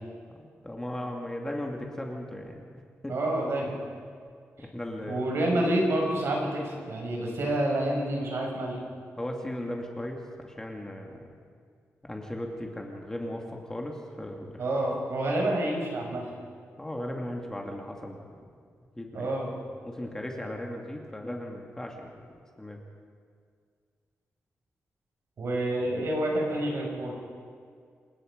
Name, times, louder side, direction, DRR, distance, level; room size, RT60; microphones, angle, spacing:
voice 1, 0.3-2.6 3.0-3.1 4.2-4.3 4.6-5.3 9.2-10.2 10.4-11.3 12.0-14.6 16.8-18.2 19.0-19.3 19.8-22.1 22.6-22.8, left 1 dB, 10° left, 1 dB, 2.4 m, -37 dB
voice 2, 3.1-3.7 5.1-8.8 14.6-16.3 19.1-19.5 25.4-27.1, right 1 dB, 65° right, -1 dB, 6.5 m, -28 dB
27.5 x 19.5 x 5.3 m, 2.1 s
wide cardioid pair, 125°, 5 cm